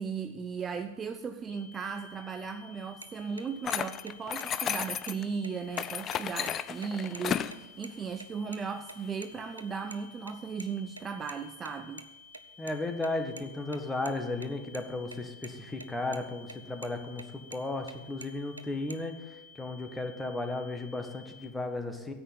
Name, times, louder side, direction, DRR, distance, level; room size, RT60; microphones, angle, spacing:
voice 1, 0.0-12.0, right 5 dB, 20° right, 7 dB, 0.6 m, -36 dB
sound 1, 1.5-21.5, left 5 dB, 70° left, 5.3 m, -54 dB
Turn Signals (Interior - Birds Outside the Car), 3.0-3.1 3.4-3.5 3.7-3.8 4.1-4.5 4.8-4.9 5.1-5.2 5.4-6.5 6.8-6.9 7.1-7.3 7.5-7.9 8.2-8.6 8.9-10.0 10.2-12.7 13.0-14.8 15.1-15.2 15.4-15.9 16.1-16.6 16.8-17.9 18.2-19.0, right 3 dB, 80° right, 0.7 m, -46 dB
sound 2, 3.7-5.2 5.7-7.6, left 9 dB, 25° left, 0.5 m, -33 dB
voice 2, 12.6-22.1, left 2 dB, 10° left, 6 dB, 1.6 m, -35 dB
9.9 x 8.0 x 8.7 m, 1.0 s
figure-of-eight pair, 90°, 0 cm